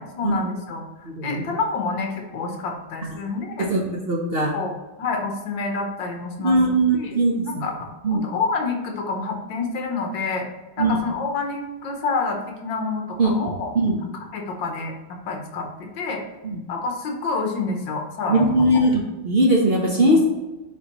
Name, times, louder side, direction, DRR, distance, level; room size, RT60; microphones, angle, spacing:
voice 1, 0.0-3.7 4.5-6.6 6.9-7.1 7.4-10.4 10.8-13.7 14.3-14.9 15.3-15.7 16.0-16.2 16.7-18.4 18.7-18.8 19.9-20.1, left 4 dB, 65° left, 2 dB, 1.6 m, -28 dB
voice 2, 1.0-1.4 3.6-4.5 6.4-7.6 8.0-8.3 10.8-11.0 13.2-13.4 13.7-14.0 16.4-16.6 18.3-20.3, right 1 dB, 50° right, -2 dB, 0.7 m, -20 dB
10.5 x 4.5 x 3.0 m, 1.1 s
omnidirectional pair, 2.3 m